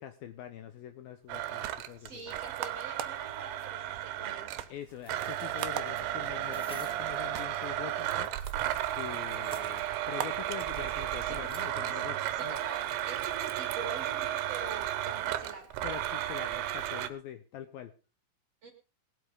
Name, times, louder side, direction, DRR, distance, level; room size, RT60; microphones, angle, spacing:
voice 1, 0.0-2.3 4.7-8.3 9.0-12.6 15.8-17.9, left 11 dB, 75° left, 9 dB, 2.3 m, -44 dB
sound 1, 1.2-11.2, right 12 dB, 75° right, 2.3 m, -45 dB
Domestic sounds home sounds, 1.3-4.7 5.1-17.1, right 12 dB, 90° right, 3.3 m, -34 dB
voice 2, 2.0-4.6 11.2-11.4 11.8-15.7 18.6-18.7, right 3 dB, 45° right, 6 dB, 2.5 m, -45 dB
sound 2, 5.0-7.1 8.1-9.8 10.6-11.6 11.9-12.0, equal, ahead, 1.6 m, -52 dB
19.0 x 8.4 x 5.3 m, 0.34 s
omnidirectional pair, 5.1 m